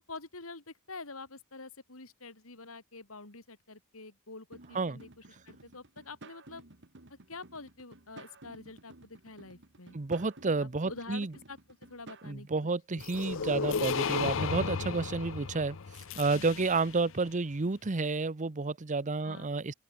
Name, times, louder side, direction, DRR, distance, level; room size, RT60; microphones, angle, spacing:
voice 1, 0.1-6.6 7.3-10.0 10.6-11.6 11.9-12.5 19.2-19.5, left 3 dB, 80° left, 3.6 m, -47 dB
sound 1, 4.5-12.3, right 2 dB, 60° right, 2.4 m, -54 dB
voice 2, 9.9-11.3 12.2-15.8 16.2-19.7, right 3 dB, 35° right, 0.8 m, -30 dB
sound 2, 13.0-17.0, left 5 dB, 65° left, 0.7 m, -34 dB
open air
head